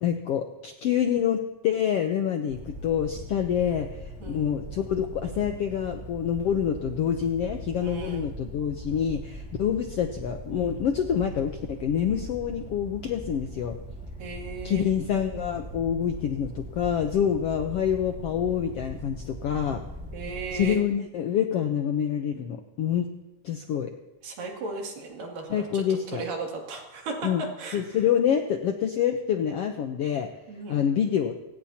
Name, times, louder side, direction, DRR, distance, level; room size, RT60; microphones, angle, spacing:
voice 1, 0.0-13.8 14.6-19.8 20.5-23.1 23.4-23.9 25.5-26.2 27.2-27.4 27.7-30.3 30.7-31.3, left 8 dB, 75° left, 5 dB, 1.4 m, -27 dB
sound 1, 2.5-20.8, right 1 dB, 5° right, 1.8 m, -40 dB
voice 2, 4.2-4.5 7.8-8.2 14.2-14.9 20.1-20.8 24.2-25.9 26.1-28.0 30.5-30.8, right 3 dB, 80° right, 0 dB, 4.4 m, -36 dB
28.0 x 17.0 x 2.9 m, 0.97 s
omnidirectional pair, 3.9 m